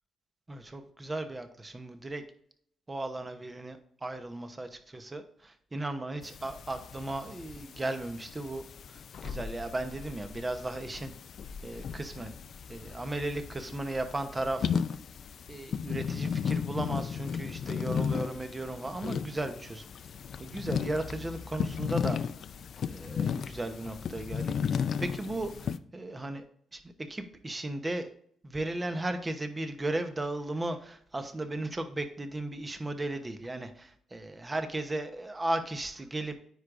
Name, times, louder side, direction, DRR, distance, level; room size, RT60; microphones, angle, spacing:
voice 1, 0.5-2.2 2.9-8.6 9.2-11.1 11.6-12.4 12.7-14.7 15.5-19.8 20.4-22.2 22.9-26.4 26.7-28.1 28.4-36.3, right 2 dB, 20° right, 8 dB, 0.9 m, -36 dB
sound 1, 6.2-25.8, left 7 dB, 55° left, 0.3 m, -35 dB
9.3 x 4.8 x 2.6 m, 0.64 s
cardioid pair, 90°, 0 cm